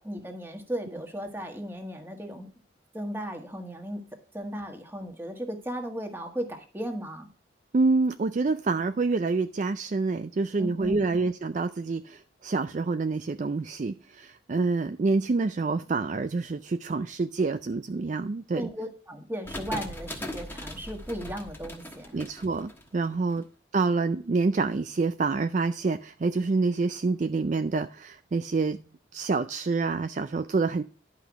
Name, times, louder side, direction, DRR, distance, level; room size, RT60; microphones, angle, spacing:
voice 1, 0.0-2.5 2.9-4.0 4.3-7.3 10.6-11.1 18.5-22.2, equal, 10° right, 1.5 m, -36 dB
voice 2, 7.7-18.7 22.1-23.4 23.7-28.8 29.1-30.8, right 3 dB, 40° right, 0.4 m, -27 dB
sound 1, 19.5-23.3, left 1 dB, 10° left, 1.3 m, -39 dB
11.0 x 5.8 x 4.7 m
head